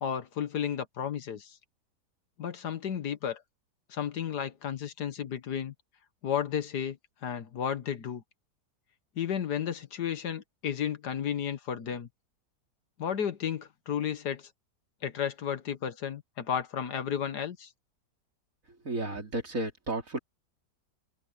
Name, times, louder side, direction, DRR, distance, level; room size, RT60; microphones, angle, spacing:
voice 1, 0.0-1.6 2.4-3.4 3.9-5.7 6.2-7.0 7.2-8.2 9.2-12.1 13.0-14.5 15.0-17.7, left 8 dB, 70° left, 1.7 m, -33 dB
voice 2, 18.7-20.2, right 2 dB, 50° right, 3.7 m, -33 dB
open air
omnidirectional pair, 1.9 m